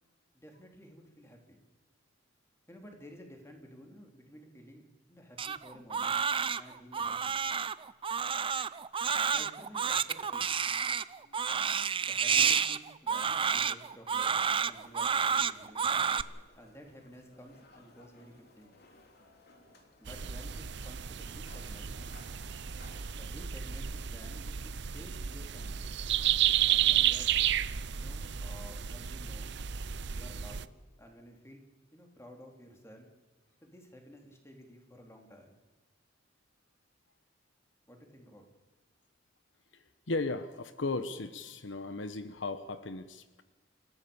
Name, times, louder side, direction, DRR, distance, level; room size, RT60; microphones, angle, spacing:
voice 1, 0.3-1.6 2.7-4.8 5.1-6.2 6.6-7.4 9.3-10.6 12.0-14.3 14.6-16.1 16.6-18.7 20.0-22.2 23.2-25.9 26.7-27.3 27.9-29.6 30.1-30.7 31.0-31.6 31.9-33.1 33.6-35.5 37.9-38.5, equal, 15° left, 2 dB, 3.5 m, -53 dB
Crying sobbing, 5.4-16.2, right 6 dB, 30° right, 0.6 m, -30 dB
sound 1, 14.1-23.5, left 2 dB, 55° left, 3.3 m, -59 dB
sound 2, 20.1-30.6, right 11 dB, 65° right, 0.7 m, -32 dB
voice 2, 39.7-43.4, left 3 dB, 80° left, 11 dB, 1.1 m, -36 dB
28.5 x 15.0 x 7.1 m, 1.2 s
head